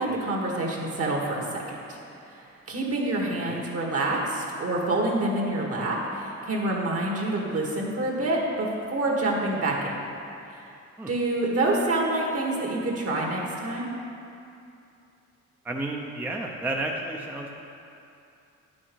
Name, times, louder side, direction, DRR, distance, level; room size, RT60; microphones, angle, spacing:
voice 1, 0.0-2.0 2.3-2.4 2.7-9.9 10.5-10.7 11.1-13.9, right 2 dB, 50° right, -1 dB, 1.9 m, -27 dB
voice 2, 15.6-17.6, right 2 dB, 5° right, 0 dB, 0.6 m, -32 dB
9.6 x 6.3 x 4.7 m, 2.6 s
cardioid pair, 90°, 30 cm